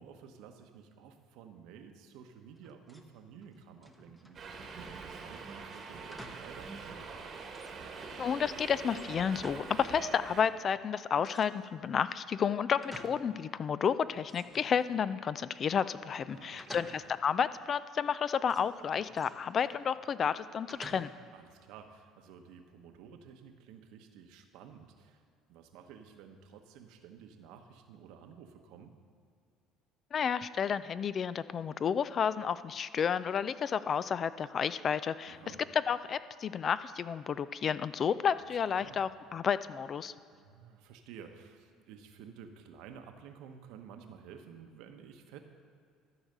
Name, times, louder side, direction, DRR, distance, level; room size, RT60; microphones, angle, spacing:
voice 1, 0.0-7.0 16.3-16.9 21.3-25.2 25.5-28.9 35.3-35.6 38.7-39.0 40.3-45.4, right 7 dB, 75° right, 6 dB, 0.9 m, -52 dB
sound 1, 2.6-3.1 3.4-4.5 6.1-6.6 7.0-7.1 7.5-8.2 8.9-10.0 10.2-10.3 11.2-11.9 12.4-13.4 13.7-13.8 14.2-15.3 16.6-17.3 18.5-19.9 20.7-21.4, equal, ahead, 0.9 m, -51 dB
Subway metro underground, 4.3-10.4, right 4 dB, 40° right, 1.2 m, -44 dB
voice 2, 8.2-21.1 30.1-35.4 35.7-40.1, left 7 dB, 40° left, 15 dB, 0.3 m, -31 dB
13.5 x 4.8 x 6.6 m, 2.3 s
supercardioid pair, 105°, 0 cm